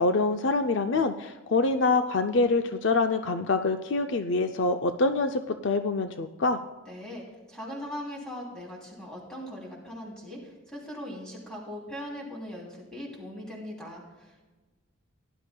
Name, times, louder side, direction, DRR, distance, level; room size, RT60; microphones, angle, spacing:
voice 1, 0.0-6.6, left 3 dB, 55° left, 7 dB, 0.4 m, -25 dB
voice 2, 6.9-14.4, equal, 5° left, -3 dB, 2.9 m, -40 dB
17.5 x 11.0 x 2.2 m, 1.2 s
head